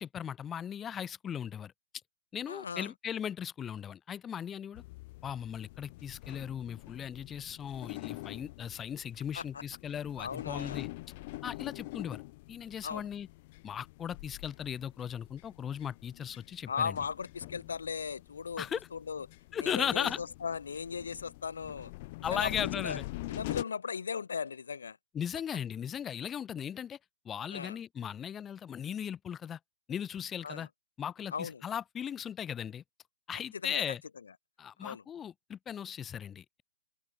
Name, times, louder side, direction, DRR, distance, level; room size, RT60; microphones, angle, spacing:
voice 1, 0.0-1.7 2.3-4.8 5.2-10.9 11.4-12.2 12.5-13.3 13.6-17.0 18.6-18.9 19.5-20.2 22.2-23.0 25.1-27.0 27.2-29.6 29.9-30.7 31.0-32.8 33.3-34.0 34.6-36.6, left 8 dB, 15° left, 2.7 m, -37 dB
voice 2, 2.5-2.9 9.3-9.6 10.2-10.8 12.8-13.1 16.7-19.3 19.6-21.9 22.3-23.0 23.3-25.0 27.5-27.8 30.4-30.7 31.3-31.6 33.6-33.8 34.8-35.0, left 6 dB, 85° left, 2.8 m, -37 dB
sound 1, 4.7-23.6, left 21 dB, 35° left, 1.9 m, -45 dB
open air
hypercardioid pair, 155°, 0 cm